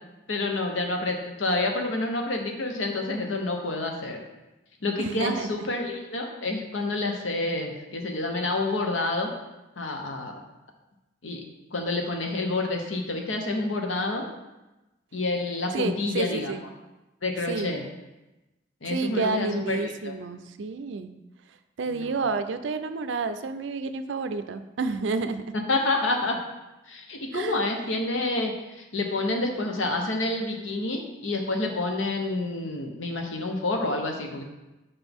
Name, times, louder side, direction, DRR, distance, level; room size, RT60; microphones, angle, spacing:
voice 1, 0.3-4.2 4.8-9.3 9.8-10.4 11.2-11.4 11.7-14.2 15.1-16.5 17.2-17.8 18.8-20.1 21.9-22.2 25.7-26.4 26.9-34.4, left 2 dB, 85° left, 3 dB, 1.0 m, -28 dB
voice 2, 5.0-5.7 15.7-16.6 17.5-17.8 18.8-21.1 21.8-25.4 27.3-27.6, right 4 dB, 70° right, 10 dB, 0.4 m, -30 dB
6.0 x 5.5 x 3.6 m, 1.0 s
head